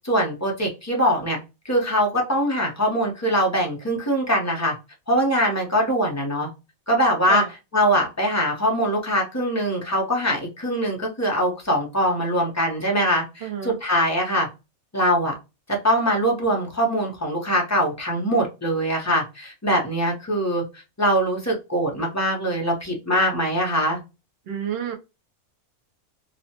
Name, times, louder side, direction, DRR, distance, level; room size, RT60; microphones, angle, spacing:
voice 1, 0.0-1.4 1.6-4.8 5.1-6.5 6.9-7.4 7.7-14.5 14.9-15.3 15.7-20.6 21.0-24.0, equal, 20° left, -1 dB, 0.5 m, -22 dB
voice 2, 13.4-13.8 24.5-25.0, right 8 dB, 55° right, 3 dB, 0.8 m, -29 dB
3.0 x 2.1 x 2.8 m, 0.26 s
omnidirectional pair, 1.5 m